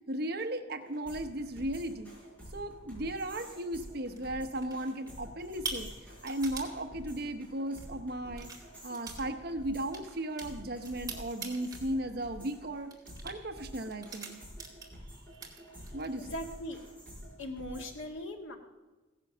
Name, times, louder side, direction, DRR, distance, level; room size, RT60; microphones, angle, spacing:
voice 1, 0.1-2.1 2.5-5.9 6.2-8.5 8.8-12.9 13.2-14.4 15.3-15.5 15.9-16.3, right 1 dB, 50° right, 7 dB, 0.9 m, -36 dB
sound 1, 0.8-18.0, equal, 10° left, 5.6 m, -49 dB
sound 2, 3.8-4.2 4.6-5.1 5.4-6.7 7.7-7.9 8.3-8.6 8.9-9.3 9.5-11.8 12.2-12.5 12.9-13.3 13.9-15.0 15.3-16.1, right 4 dB, 20° right, 2.0 m, -43 dB
voice 2, 16.2-16.8 17.4-18.6, left 1 dB, 75° left, 3 dB, 1.9 m, -39 dB
16.0 x 10.5 x 6.7 m, 1.2 s
head